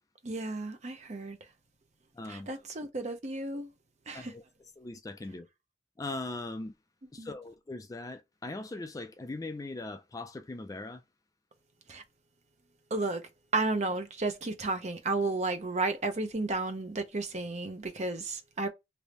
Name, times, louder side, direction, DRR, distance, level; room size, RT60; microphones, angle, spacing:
voice 1, 0.2-1.4 2.3-3.7 4.1-4.3 7.2-7.3 11.9-12.0 12.9-18.7, right 3 dB, 40° right, 0.8 m, -33 dB
voice 2, 2.1-2.5 4.1-4.4 4.8-5.5 6.0-6.7 7.1-11.0, left 2 dB, 20° left, 0.4 m, -40 dB
3.4 x 2.6 x 3.0 m
head